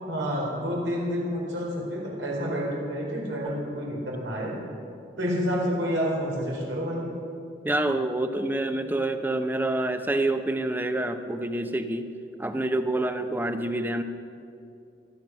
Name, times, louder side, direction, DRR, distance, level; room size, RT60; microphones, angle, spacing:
voice 1, 0.0-4.5 5.2-7.1, equal, 90° right, -3 dB, 4.6 m, -29 dB
voice 2, 7.6-12.1 12.4-14.0, right 1 dB, 10° right, 8 dB, 0.7 m, -27 dB
24.5 x 9.0 x 6.1 m, 2.6 s
head